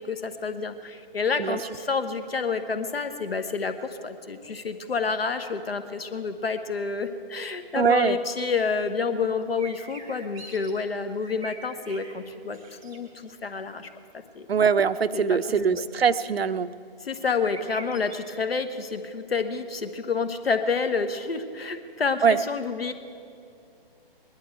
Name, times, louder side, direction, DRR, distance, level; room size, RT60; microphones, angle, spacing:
voice 1, 0.1-12.6 12.8-13.9 14.3-14.5 15.1-15.4 15.7-15.8 17.0-22.9, left 5 dB, 80° left, 9 dB, 1.2 m, -29 dB
voice 2, 7.7-8.2 14.5-16.7 22.2-22.4, right 6 dB, 85° right, 13 dB, 0.6 m, -22 dB
sound 1, 9.6-10.7 11.1-12.1 12.5-13.0 17.3-18.2, right 3 dB, 5° right, 0.3 m, -44 dB
20.0 x 11.5 x 4.6 m, 2.4 s
figure-of-eight pair, 140°, 30 cm